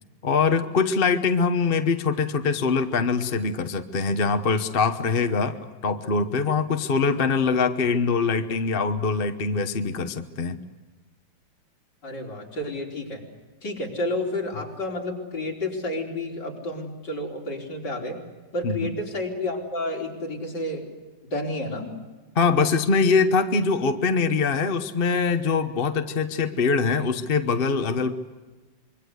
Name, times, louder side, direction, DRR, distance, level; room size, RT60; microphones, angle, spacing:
voice 1, 0.2-5.6 5.8-10.6 18.6-18.9 22.3-28.1, left 4 dB, 35° left, 8 dB, 1.0 m, -23 dB
voice 2, 12.0-13.2 13.6-18.2 18.5-20.9 21.3-21.9, left 1 dB, 60° left, 0 dB, 4.9 m, -30 dB
26.0 x 23.5 x 8.1 m, 1.3 s
omnidirectional pair, 2.1 m